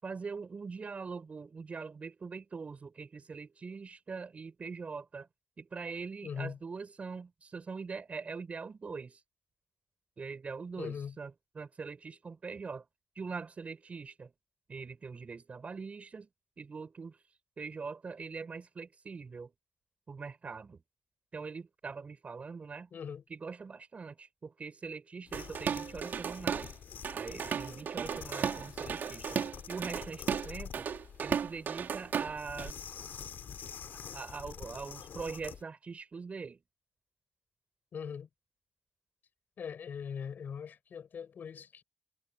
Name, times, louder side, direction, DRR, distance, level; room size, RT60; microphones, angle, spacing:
voice 1, 0.0-5.3 5.6-9.2 10.2-12.9 13.2-14.3 14.7-16.3 16.6-17.2 17.6-19.5 20.1-20.8 21.3-22.9 23.3-26.7 27.1-29.4 29.7-30.9 31.2-33.2 34.1-36.6, right 5 dB, 40° right, 7.5 m, -42 dB
voice 2, 6.2-6.6 10.8-11.2 22.9-23.2 37.9-38.3 39.6-41.8, left 7 dB, 70° left, 6.7 m, -41 dB
sound 1, 25.3-35.6, left 8 dB, 85° left, 3.5 m, -47 dB
Drum kit / Drum, 25.3-26.7 27.0-32.7, right 7 dB, 75° right, 3.9 m, -35 dB
wide cardioid pair, 120°, 3 cm